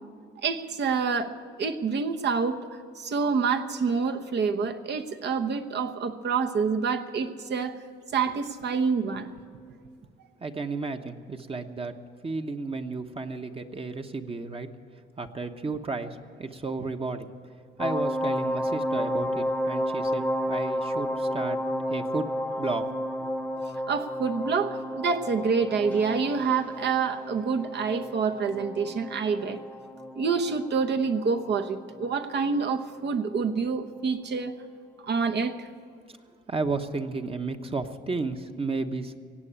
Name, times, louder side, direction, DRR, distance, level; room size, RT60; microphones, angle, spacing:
voice 1, 0.4-2.6 3.0-7.8 8.1-9.3 23.9-29.6 30.1-34.5 35.0-35.7, right 5 dB, 60° right, 6 dB, 1.0 m, -27 dB
voice 2, 10.4-11.9 12.2-14.7 15.2-17.3 17.8-21.6 21.9-22.3 22.6-22.8 36.5-39.2, right 3 dB, 30° right, 5 dB, 1.0 m, -33 dB
sound 1, 17.8-33.4 33.7-33.8, equal, 5° left, 1.0 m, -32 dB
17.0 x 8.4 x 10.0 m, 2.3 s
cardioid pair, 90°, 20 cm